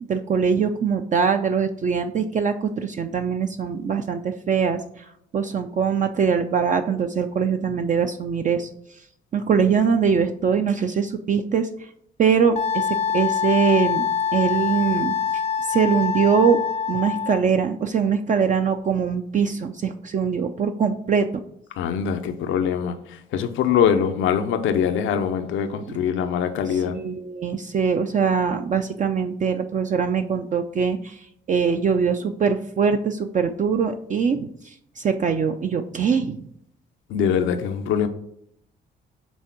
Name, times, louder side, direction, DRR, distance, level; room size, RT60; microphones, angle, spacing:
voice 1, 0.0-9.0 9.3-11.9 12.2-14.1 14.3-15.2 15.6-16.6 16.9-21.3 25.9-26.0 26.7-36.5, right 6 dB, 40° right, 0.5 m, -22 dB
Wind instrument woodwind instrument, 12.6-17.4, left 7 dB, 35° left, 0.5 m, -24 dB
voice 2, 21.8-26.9 37.1-38.1, left 8 dB, 85° left, 0.6 m, -23 dB
6.2 x 3.6 x 5.9 m
cardioid pair, 90°, 20 cm